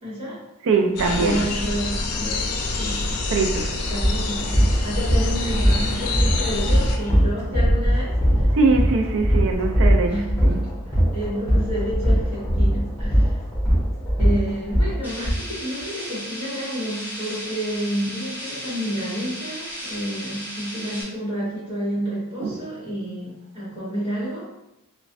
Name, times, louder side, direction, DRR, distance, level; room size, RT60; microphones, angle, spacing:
voice 1, 0.0-0.4 1.2-2.4 2.8-3.5 3.9-8.6 10.1-13.4 14.2-24.5, equal, 25° right, -9 dB, 1.5 m, -30 dB
voice 2, 0.6-1.4 3.3-3.8 8.5-10.1 10.4-10.6 22.4-22.6, right 4 dB, 60° right, 4 dB, 0.4 m, -21 dB
sound 1, 1.0-7.0, left 2 dB, 85° left, 0.4 m, -27 dB
sound 2, 3.9-15.3, equal, 15° left, 0.9 m, -20 dB
sound 3, 15.0-21.0, equal, 10° right, 0.6 m, -35 dB
3.0 x 2.1 x 2.6 m, 0.90 s
head